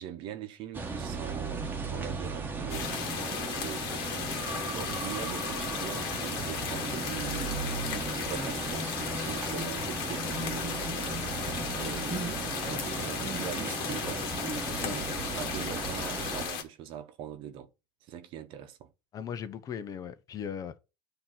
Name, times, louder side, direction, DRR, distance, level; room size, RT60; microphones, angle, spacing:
voice 1, 0.0-1.6 1.9-2.9 3.6-3.9 4.7-7.8 8.2-11.3 11.7-14.3 14.8-17.7 18.0-18.9, right 10 dB, 55° right, 1.0 m, -42 dB
sound 1, 0.7-16.5, right 3 dB, 20° right, 1.1 m, -36 dB
sound 2, 2.7-16.6, left 7 dB, 60° left, 1.6 m, -36 dB
voice 2, 19.1-20.8, left 8 dB, 35° left, 0.7 m, -38 dB
8.6 x 2.9 x 5.7 m
supercardioid pair, 115°, 11 cm